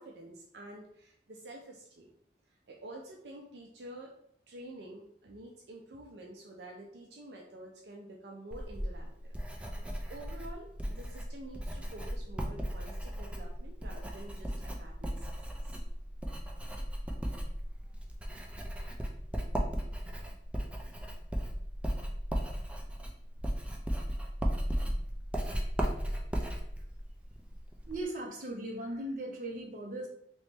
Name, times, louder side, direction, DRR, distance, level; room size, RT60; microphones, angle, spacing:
voice 1, 0.0-2.1 2.7-4.1 4.5-9.4 10.1-15.3 15.6-15.8, right 1 dB, 70° right, 0 dB, 0.5 m, -48 dB
Writing, 8.5-28.0, equal, 5° right, 0.4 m, -36 dB
voice 2, 27.9-30.1, right 1 dB, 45° right, -1 dB, 0.8 m, -38 dB
3.0 x 3.0 x 3.3 m, 0.71 s
head